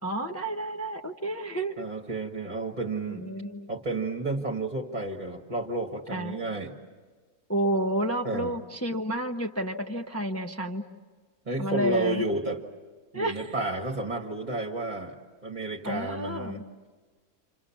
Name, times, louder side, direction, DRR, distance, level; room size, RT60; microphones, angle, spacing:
voice 1, 0.0-1.8 3.1-3.7 6.1-6.4 7.5-10.8 11.6-12.2 13.1-13.5 15.8-16.7, right 1 dB, 10° left, 3 dB, 0.8 m, -30 dB
voice 2, 1.8-3.2 3.7-6.7 8.2-8.5 11.5-12.6 13.1-15.2 15.4-16.6, right 2 dB, 30° right, 0 dB, 1.8 m, -31 dB
28.5 x 28.0 x 7.2 m, 1.4 s
omnidirectional pair, 1.7 m